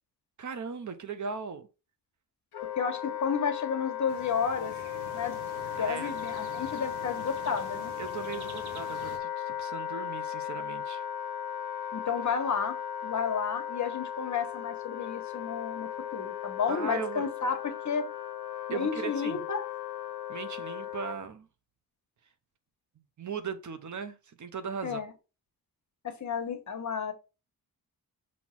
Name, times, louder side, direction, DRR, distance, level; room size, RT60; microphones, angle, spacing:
voice 1, 0.4-1.7 5.8-6.2 8.0-11.0 16.7-17.3 18.7-19.4 20.3-21.5 23.2-25.0, right 6 dB, 50° right, 0.8 m, -38 dB
Wind instrument woodwind instrument, 2.5-21.2, left 10 dB, 75° left, 0.9 m, -37 dB
voice 2, 2.8-4.7 5.1-5.4 5.8-7.9 11.9-12.8 13.0-18.0 18.7-19.6 24.8-25.1 26.0-27.1, left 6 dB, 50° left, 1.3 m, -32 dB
sound 1, 4.1-9.2, right 4 dB, 90° right, 1.5 m, -46 dB
6.3 x 3.0 x 5.8 m
wide cardioid pair, 130°, 37 cm